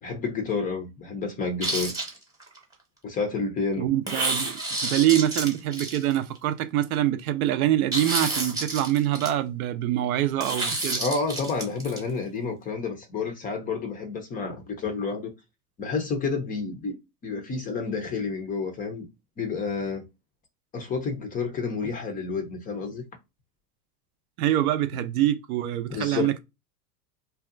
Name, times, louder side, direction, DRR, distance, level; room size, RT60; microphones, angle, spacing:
voice 1, 0.0-1.9 3.0-3.9 11.0-15.3 15.8-17.0 17.2-19.1 19.4-20.0 20.7-23.0 25.9-26.4, left 4 dB, 20° left, 0.4 m, -30 dB
sound 1, 1.6-2.6 4.1-6.4 7.9-9.3 10.4-12.0, right 2 dB, 10° right, 0.9 m, -29 dB
voice 2, 3.8-11.0 24.4-26.4, right 13 dB, 65° right, 0.5 m, -25 dB
2.7 x 2.1 x 2.4 m
hypercardioid pair, 105°, 47 cm